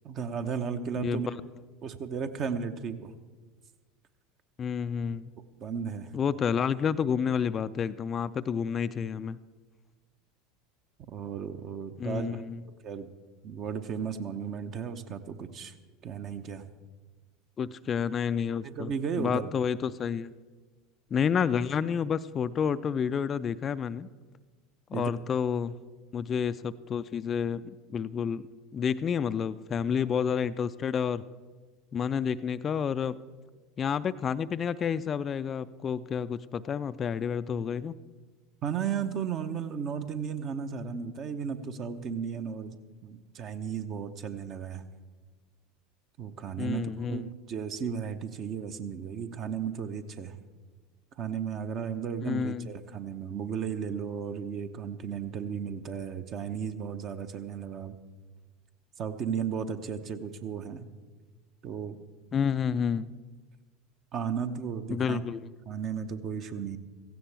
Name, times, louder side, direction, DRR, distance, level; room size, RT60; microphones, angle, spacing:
voice 1, 0.0-1.3 1.8-3.1 5.6-6.1 11.1-12.4 12.8-13.1 13.4-15.7 16.0-16.6 18.6-19.5 24.9-25.1 38.6-42.8 43.0-44.8 46.2-50.4 51.2-58.0 59.0-60.9 61.6-62.0 64.1-65.2 65.7-66.8, right 7 dB, 45° right, 9 dB, 0.9 m, -34 dB
voice 2, 1.0-1.3 4.6-5.3 6.1-9.4 12.0-12.6 17.6-18.9 19.2-20.3 21.1-24.1 24.9-25.8 26.1-28.5 28.7-31.2 31.9-33.2 33.8-37.9 46.6-47.2 52.2-52.7 62.3-63.1 64.9-65.5, left 7 dB, 35° left, 14 dB, 0.4 m, -29 dB
16.5 x 15.0 x 3.4 m, 1.4 s
figure-of-eight pair, 75°, 0 cm